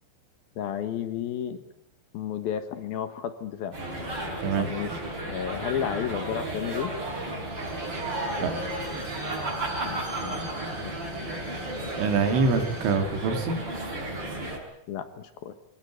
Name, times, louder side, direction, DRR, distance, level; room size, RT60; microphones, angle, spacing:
voice 1, 0.6-1.7 2.1-3.8 4.5-4.9 5.2-6.9 9.8-10.4 10.8-11.0 14.9-15.5, left 9 dB, 65° left, 10 dB, 2.6 m, -32 dB
sound 1, 3.7-14.6, right 1 dB, 25° right, 5.6 m, -33 dB
Bowed string instrument, 7.4-13.0 13.3-13.4, right 1 dB, 50° right, 6.2 m, -45 dB
voice 2, 8.4-8.7 12.0-13.6, right 4 dB, 75° right, 5 dB, 5.2 m, -25 dB
25.0 x 18.5 x 9.4 m, 0.78 s
omnidirectional pair, 5.7 m